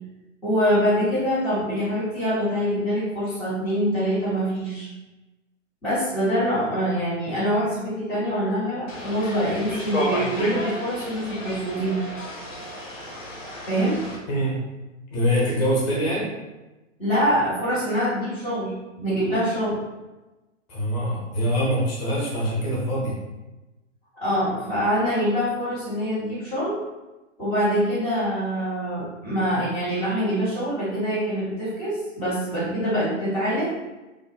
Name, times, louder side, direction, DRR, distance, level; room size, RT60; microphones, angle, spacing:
voice 1, 0.4-4.9 5.8-12.0 13.7-14.0 17.0-18.7 19.0-19.8 24.2-26.7 27.4-33.7, equal, ahead, -19 dB, 0.4 m, -24 dB
sound 1, 8.9-14.2, equal, 85° left, 0.8 m, -32 dB
voice 2, 15.1-16.3 20.7-23.2, equal, 25° left, -5 dB, 0.7 m, -24 dB
2.6 x 2.0 x 2.4 m, 1.1 s
figure-of-eight pair, 110°, 38 cm